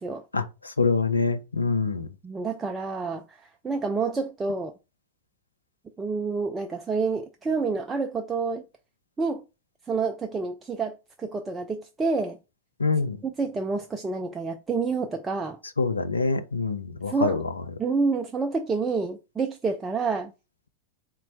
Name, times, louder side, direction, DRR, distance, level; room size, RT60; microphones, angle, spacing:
voice 1, 0.3-2.1 12.8-13.2 15.8-17.4, left 4 dB, 80° left, 0.4 m, -25 dB
voice 2, 2.2-4.7 6.0-8.7 9.2-9.4 9.9-12.4 13.2-15.6 17.1-17.4 17.8-20.3, right 4 dB, 15° right, 0.4 m, -28 dB
4.1 x 2.2 x 4.0 m
figure-of-eight pair, 90°, 0 cm